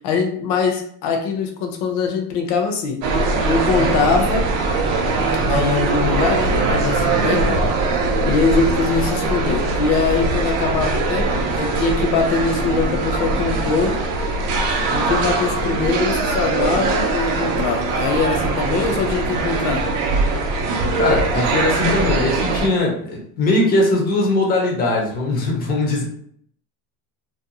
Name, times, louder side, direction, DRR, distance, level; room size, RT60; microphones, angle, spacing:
voice 1, 0.0-3.0 3.4-4.5 5.5-7.6 8.2-13.9 14.9-19.8, left 4 dB, 60° left, 3 dB, 0.7 m, -22 dB
sound 1, 3.0-22.7, right 3 dB, 55° right, 0.6 m, -21 dB
voice 2, 21.0-26.0, left 2 dB, 20° left, -1 dB, 0.5 m, -20 dB
2.6 x 2.1 x 2.7 m, 0.64 s
cardioid pair, 160°, 45 cm